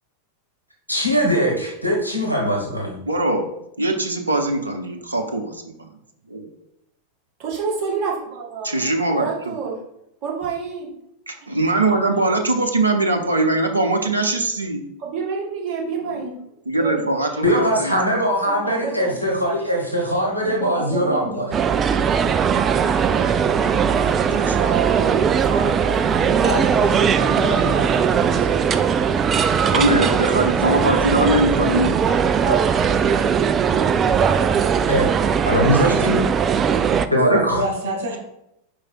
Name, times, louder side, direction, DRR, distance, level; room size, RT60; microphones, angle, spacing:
voice 1, 0.9-3.0 17.4-21.5 32.4-32.6 34.6-35.1 35.4-36.2 37.1-37.6, equal, 90° left, 0 dB, 1.2 m, -21 dB
voice 2, 3.1-3.4 3.8-5.9 8.6-9.5 11.3-14.8 16.7-17.9 24.3-24.7 29.7-32.0 37.1-37.5, right 2 dB, 80° right, 3 dB, 0.7 m, -21 dB
voice 3, 7.4-9.8 10.2-10.9 11.5-11.6 15.0-16.4 16.8-17.0 17.3-17.4 18.5-19.2 20.4-21.5 24.3-26.4, right 5 dB, 40° right, -3 dB, 1.9 m, -29 dB
sound 1, 21.5-37.1, right 7 dB, 25° right, 0.3 m, -19 dB
voice 4, 26.4-28.6 36.8-38.2, right 1 dB, 60° right, 0 dB, 1.9 m, -29 dB
4.8 x 4.6 x 4.4 m, 0.81 s
figure-of-eight pair, 90°, 0 cm